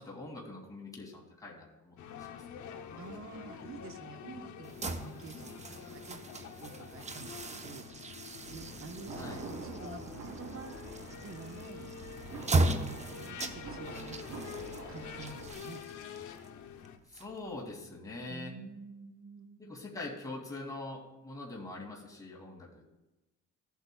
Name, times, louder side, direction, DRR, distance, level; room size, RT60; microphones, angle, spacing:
voice 1, 0.0-2.6 9.2-9.4 17.1-18.5 19.6-23.0, left 2 dB, 10° left, -2 dB, 2.5 m, -44 dB
sound 1, 2.0-17.0, left 8 dB, 70° left, 0.9 m, -47 dB
voice 2, 3.0-7.9 8.5-10.8 11.2-11.9 12.5-14.5 14.9-15.8 18.3-19.8, right 4 dB, 45° right, 7 dB, 1.0 m, -48 dB
sound 2, 4.6-17.7, right 2 dB, 25° right, 0.9 m, -37 dB
sound 3, 8.4-15.5, right 3 dB, 70° right, 2.7 m, -46 dB
16.0 x 8.2 x 2.3 m, 1.0 s
cardioid pair, 90°, 30 cm